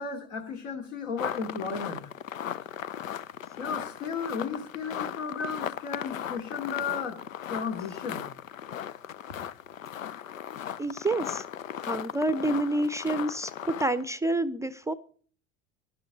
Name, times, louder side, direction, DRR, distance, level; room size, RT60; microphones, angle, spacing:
voice 1, 0.0-2.0 3.6-7.2 7.5-8.2, left 5 dB, 70° left, 4 dB, 2.8 m, -34 dB
sound 1, 1.2-14.1, left 10 dB, 90° left, 0.5 m, -37 dB
voice 2, 10.8-11.4 11.8-14.9, right 2 dB, 10° right, 14 dB, 0.5 m, -28 dB
16.0 x 11.0 x 3.9 m, 0.43 s
hypercardioid pair, 75°, 38 cm